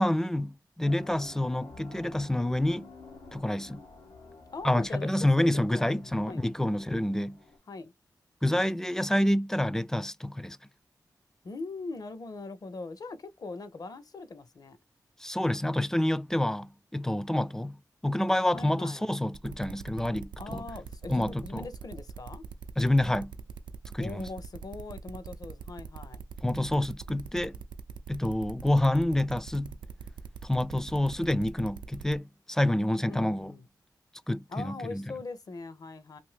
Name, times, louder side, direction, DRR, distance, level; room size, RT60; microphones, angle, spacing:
voice 1, 0.0-2.9 3.3-3.8 4.6-7.4 8.4-10.6 15.2-17.8 18.0-20.6 21.1-21.7 22.8-23.3 23.9-24.3 26.4-27.6 28.1-29.8 30.4-33.5 34.3-35.1, left 1 dB, 5° left, 0.3 m, -28 dB
sound 1, 0.8-7.6, left 3 dB, 90° left, 0.9 m, -50 dB
voice 2, 4.5-5.1 5.4-6.6 7.7-7.9 11.4-14.8 18.5-19.1 20.4-22.4 24.0-26.2 33.1-33.7 34.5-36.2, left 3 dB, 55° left, 0.7 m, -41 dB
sound 2, 19.3-32.2, right 7 dB, 80° right, 0.4 m, -43 dB
2.7 x 2.6 x 3.2 m
cardioid pair, 50°, 8 cm